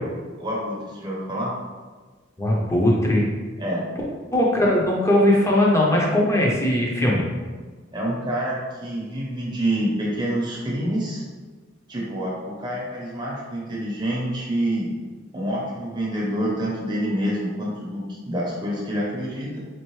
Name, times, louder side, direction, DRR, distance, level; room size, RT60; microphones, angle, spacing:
voice 1, 0.4-1.5 3.6-3.9 7.9-11.2 11.9-14.9 15.3-19.6, right 1 dB, 25° right, -5 dB, 0.8 m, -27 dB
voice 2, 2.4-3.3 4.3-7.2, left 1 dB, 15° left, -3 dB, 0.7 m, -19 dB
4.4 x 2.5 x 3.0 m, 1.4 s
head